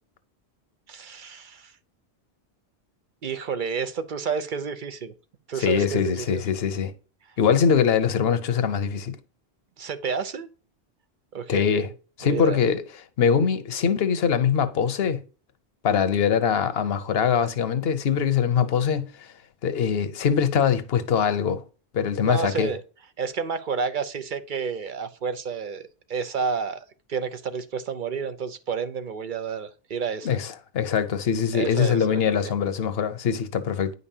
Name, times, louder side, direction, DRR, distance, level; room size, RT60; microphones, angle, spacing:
voice 1, 0.9-1.7 3.2-5.1 5.5-6.4 9.8-10.5 11.3-11.9 12.2-12.6 20.6-20.7 22.2-22.8 23.2-25.8 26.1-26.8 27.1-30.4 31.5-32.5, right 6 dB, 55° right, 0.8 m, -30 dB
voice 2, 5.6-6.9 7.4-9.2 11.5-11.9 12.2-12.8 13.2-15.2 15.8-19.3 19.6-21.6 21.9-22.7 30.2-33.9, left 7 dB, 70° left, 1.0 m, -23 dB
9.6 x 5.4 x 2.7 m
omnidirectional pair, 1.1 m